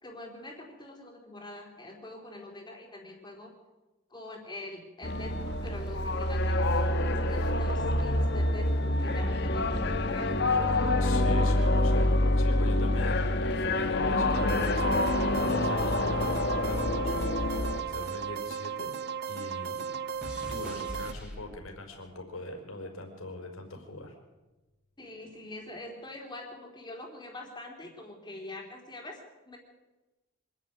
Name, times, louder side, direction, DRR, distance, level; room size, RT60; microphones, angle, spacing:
voice 1, 0.0-3.5 4.1-10.4 18.0-18.1 25.0-29.6, left 1 dB, 20° left, 1 dB, 3.5 m, -44 dB
sound 1, 5.0-17.8, left 1 dB, 55° left, 1.5 m, -26 dB
voice 2, 11.0-17.5 17.8-18.9 19.3-19.9 20.5-24.1, left 1 dB, 80° left, 3 dB, 5.0 m, -41 dB
sound 2, 13.4-15.9 16.2-18.9 19.1-22.0 22.7-23.1, equal, 5° right, 3.6 m, -46 dB
sound 3, 14.3-21.1, right 7 dB, 50° right, 0.8 m, -36 dB
25.0 x 11.5 x 9.6 m, 1.1 s
head